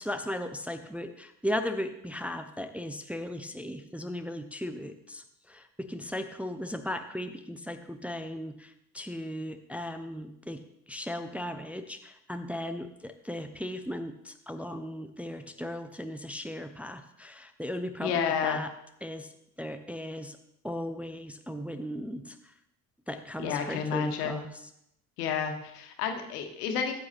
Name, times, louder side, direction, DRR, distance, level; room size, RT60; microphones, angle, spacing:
voice 1, 0.0-18.7 19.0-20.4 20.6-22.5 23.1-24.7, left 1 dB, 5° right, 7 dB, 0.7 m, -37 dB
voice 2, 18.0-18.6 23.4-24.4 25.2-26.9, left 7 dB, 70° left, 5 dB, 1.4 m, -30 dB
14.0 x 8.2 x 2.9 m, 0.79 s
figure-of-eight pair, 60°, 47 cm